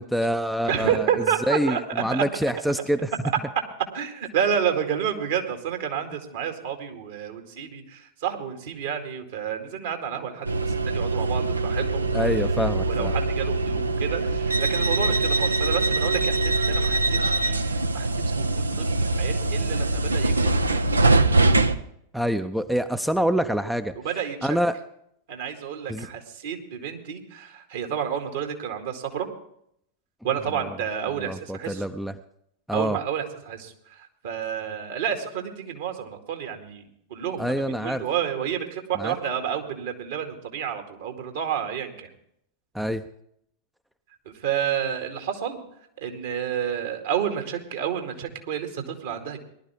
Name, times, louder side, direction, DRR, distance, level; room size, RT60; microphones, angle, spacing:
voice 1, 0.0-3.1 12.1-13.1 22.1-24.0 24.4-24.8 25.9-26.1 30.5-30.8 31.2-32.2 32.7-33.0 37.4-38.1 38.9-39.2 42.7-43.0, equal, ahead, 10 dB, 0.6 m, -26 dB
voice 2, 0.7-2.2 3.9-12.4 12.9-18.1 18.4-20.8 24.0-24.6 25.3-29.3 30.2-31.8 32.7-36.8 37.1-42.1 44.4-45.6 46.0-49.4, right 8 dB, 55° right, 5 dB, 2.1 m, -30 dB
sound 1, 10.4-21.7, right 2 dB, 80° right, 0.6 m, -23 dB
19.0 x 12.0 x 3.6 m, 0.72 s
figure-of-eight pair, 90°, 0 cm